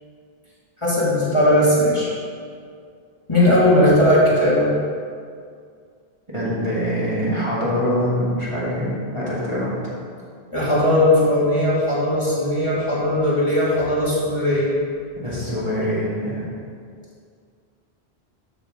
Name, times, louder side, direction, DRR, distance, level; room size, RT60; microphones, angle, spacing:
voice 1, 0.8-2.1 3.3-4.7 10.5-14.7, left 1 dB, 25° left, -10 dB, 2.6 m, -18 dB
voice 2, 6.3-9.7 15.2-16.5, equal, 30° right, -9 dB, 2.5 m, -24 dB
13.5 x 6.7 x 3.9 m, 2.2 s
omnidirectional pair, 1.1 m